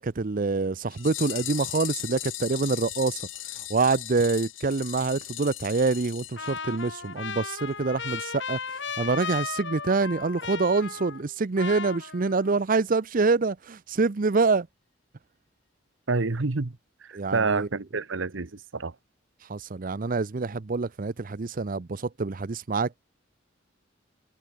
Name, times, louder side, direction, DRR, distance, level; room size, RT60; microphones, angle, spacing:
voice 1, 0.0-3.2 3.6-14.7 17.1-17.7 19.5-23.0, right 4 dB, 45° right, 0.6 m, -26 dB
sound 1, 0.9-7.1 7.4-7.5 7.7-7.8 8.2-8.3 8.6-8.7, left 15 dB, 85° left, 4.6 m, -38 dB
Trumpet, 6.4-11.3 11.6-12.6, left 5 dB, 65° left, 3.0 m, -36 dB
voice 2, 16.1-16.7 17.1-18.9, right 3 dB, 80° right, 1.1 m, -28 dB
head